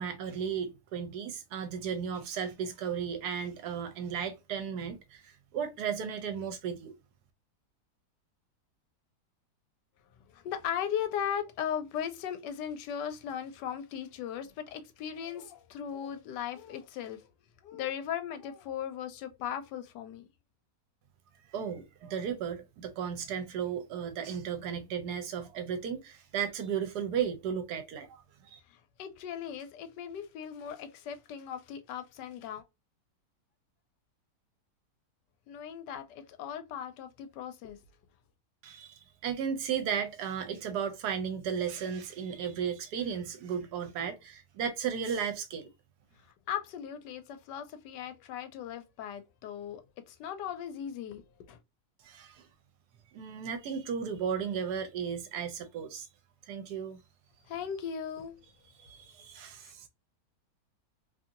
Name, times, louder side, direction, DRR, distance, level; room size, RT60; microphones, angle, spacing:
voice 1, 0.0-6.9 21.5-28.2 28.5-28.6 38.6-45.7 52.0-52.5 53.1-56.1 56.5-57.0 58.8-59.9, right 7 dB, 75° right, 1.1 m, -35 dB
voice 2, 10.3-17.2 17.6-20.3 29.0-32.6 35.5-37.8 46.5-49.8 50.1-51.2 51.5-51.6 57.5-58.4 59.6-59.7, left 9 dB, 85° left, 1.2 m, -37 dB
2.9 x 2.6 x 2.5 m
omnidirectional pair, 1.8 m